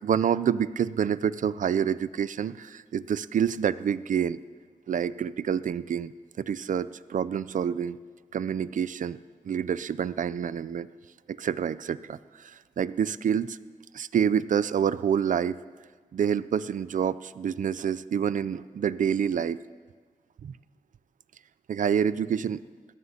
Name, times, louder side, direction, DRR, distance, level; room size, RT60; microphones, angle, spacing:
voice 1, 0.0-4.4 4.9-6.1 6.4-8.0 8.3-9.2 9.4-10.9 11.3-13.6 13.9-15.6 16.1-19.6 20.4-20.5 21.7-22.6, right 8 dB, 70° right, 16 dB, 0.4 m, -27 dB
20.5 x 15.0 x 2.8 m, 1.5 s
cardioid pair, 65°, 14 cm